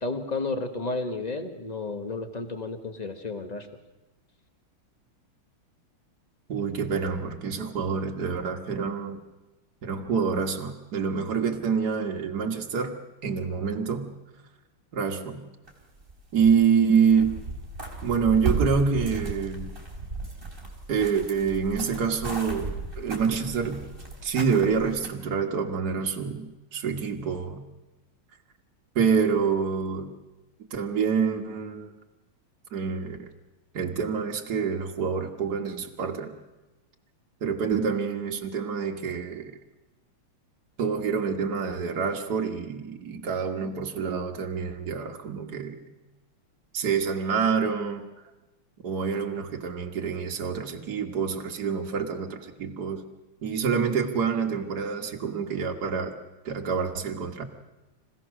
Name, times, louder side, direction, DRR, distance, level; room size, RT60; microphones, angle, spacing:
voice 1, 0.0-3.7, left 3 dB, 20° left, 6 dB, 1.4 m, -32 dB
voice 2, 6.5-9.2 9.8-12.9 13.2-14.1 14.9-15.5 16.3-17.4 18.0-19.7 20.9-23.9 24.2-27.6 29.0-30.1 30.7-31.9 32.7-33.3 33.7-36.3 37.4-39.6 40.8-45.8 46.7-48.0 48.8-53.0 53.4-56.1 56.5-57.4, right 6 dB, 50° right, 2 dB, 2.0 m, -27 dB
sound 1, 15.7-16.8 17.1-25.1, right 3 dB, 25° right, 3.8 m, -34 dB
26.5 x 16.0 x 6.5 m, 1.1 s
omnidirectional pair, 2.3 m